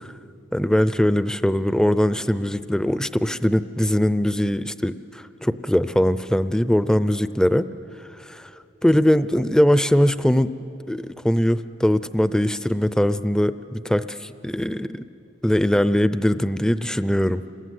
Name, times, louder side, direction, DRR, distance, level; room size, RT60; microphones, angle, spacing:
voice 1, 0.5-7.7 8.3-8.5 8.8-10.5 10.9-15.0 15.4-17.4, equal, 5° left, 13 dB, 0.5 m, -21 dB
28.5 x 21.5 x 9.5 m, 2.8 s
head